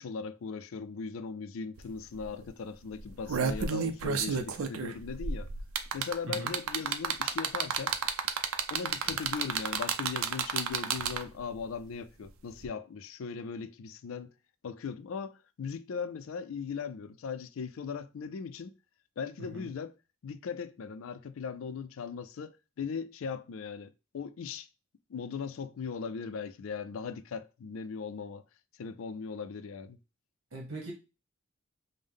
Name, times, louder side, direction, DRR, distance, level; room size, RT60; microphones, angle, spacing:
voice 1, 0.0-5.5 5.9-7.9 8.7-14.3 14.6-18.7 19.2-20.0 20.2-24.7 25.1-28.4 28.8-30.0, left 5 dB, 70° left, 0.4 m, -39 dB
sound 1, 1.8-1.9 2.2-2.4 3.0-11.4 12.6-12.7, right 6 dB, 85° right, 0.5 m, -31 dB
voice 2, 30.5-30.9, right 1 dB, 65° right, 1.1 m, -40 dB
5.4 x 2.1 x 3.4 m
head